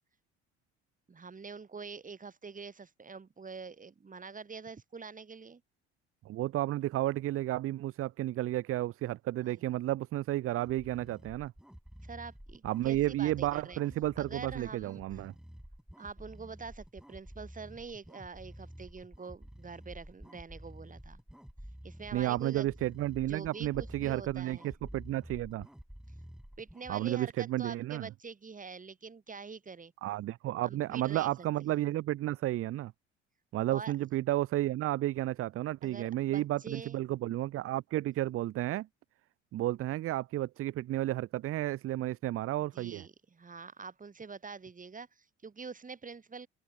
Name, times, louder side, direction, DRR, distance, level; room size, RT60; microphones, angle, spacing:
voice 1, 1.1-5.6 9.4-9.5 12.0-13.8 14.2-15.2 16.0-21.2 21.8-22.7 23.3-24.7 26.6-29.9 30.6-31.5 33.7-33.9 35.8-37.0 42.6-46.5, right 5 dB, 25° right, 2.8 m, -45 dB
voice 2, 6.2-11.5 12.6-15.3 22.1-25.7 26.9-28.1 30.0-32.9 33.5-38.9 39.5-43.1, right 15 dB, 40° right, 0.7 m, -32 dB
sound 1, 10.5-26.9, equal, ahead, 4.2 m, -50 dB
open air
figure-of-eight pair, 55°, 34 cm